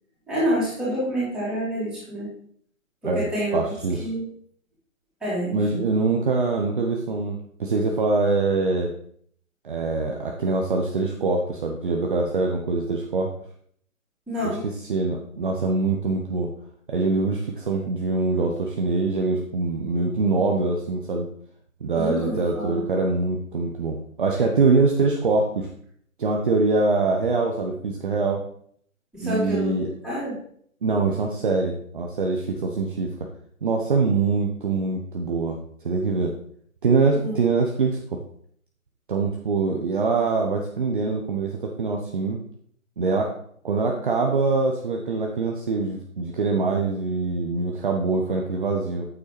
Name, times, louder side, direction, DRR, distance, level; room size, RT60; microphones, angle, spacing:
voice 1, 0.3-2.3 3.0-3.6 4.0-4.3 5.2-5.8 14.3-14.6 21.9-22.9 29.1-30.4 37.1-37.3, equal, ahead, -11 dB, 3.6 m, -27 dB
voice 2, 3.5-4.1 5.5-8.9 9.6-13.3 14.4-16.5 16.9-21.3 21.8-25.7 26.2-28.4 29.2-29.9 30.8-33.1 33.6-35.6 35.8-36.3 36.8-38.2 39.1-42.4 43.0-43.3 43.6-49.1, right 3 dB, 40° right, 1 dB, 0.9 m, -24 dB
9.0 x 8.4 x 3.2 m, 0.63 s
figure-of-eight pair, 150°, 41 cm